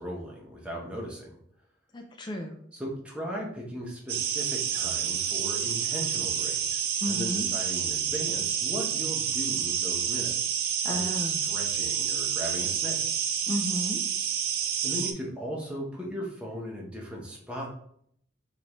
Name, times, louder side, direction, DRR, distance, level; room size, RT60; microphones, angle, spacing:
voice 1, 0.0-1.4 2.7-10.5 10.9-13.0 14.8-17.7, equal, 5° right, -2 dB, 0.8 m, -37 dB
voice 2, 1.9-2.6 7.0-7.5 10.8-11.5 13.5-14.0, left 1 dB, 25° left, 3 dB, 0.4 m, -33 dB
sound 1, 4.1-15.1, right 8 dB, 50° right, 0.4 m, -29 dB
5.0 x 2.6 x 3.0 m, 0.65 s
head